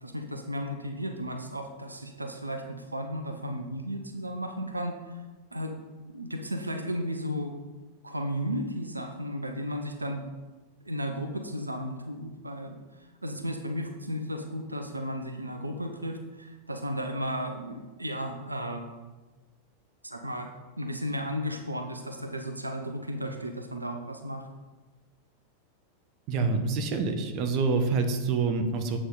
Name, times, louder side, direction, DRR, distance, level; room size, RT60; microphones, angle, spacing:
voice 1, 0.0-5.2 5.5-5.8 6.1-7.5 8.0-10.2 10.8-18.9 20.0-20.5 20.8-24.5, equal, 85° right, 5 dB, 0.6 m, -34 dB
voice 2, 26.3-29.0, right 4 dB, 40° right, 6 dB, 0.9 m, -26 dB
7.7 x 6.2 x 3.9 m, 1.2 s
figure-of-eight pair, 90°, 0 cm